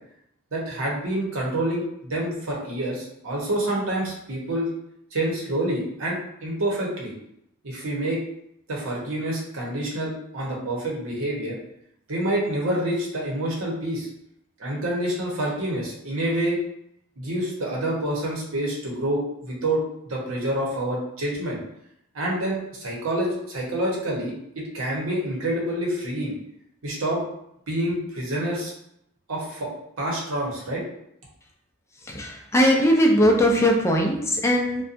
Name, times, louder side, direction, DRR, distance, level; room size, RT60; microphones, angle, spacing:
voice 1, 0.5-4.7 5.1-7.1 7.6-8.2 8.7-11.6 12.1-14.1 14.6-16.6 17.2-21.6 22.1-26.3 26.8-27.2 27.7-28.7 29.3-29.7 30.0-30.8, right 1 dB, 90° right, -3 dB, 0.9 m, -27 dB
voice 2, 32.0-34.8, equal, 15° left, 0 dB, 0.4 m, -20 dB
2.6 x 2.2 x 2.5 m, 0.76 s
head